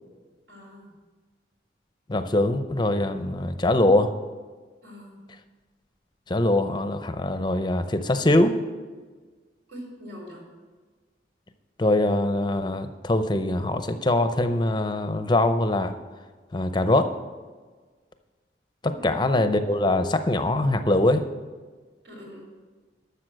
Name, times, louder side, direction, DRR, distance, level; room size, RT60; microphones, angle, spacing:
voice 1, 0.5-0.9 4.8-5.2 9.7-10.5 18.9-19.1 22.0-22.5, equal, 80° right, -1 dB, 4.3 m, -42 dB
voice 2, 2.1-4.1 6.3-8.5 11.8-15.9 16.5-17.1 18.8-21.3, left 1 dB, 25° left, 9 dB, 0.6 m, -23 dB
12.5 x 7.0 x 6.3 m, 1.4 s
head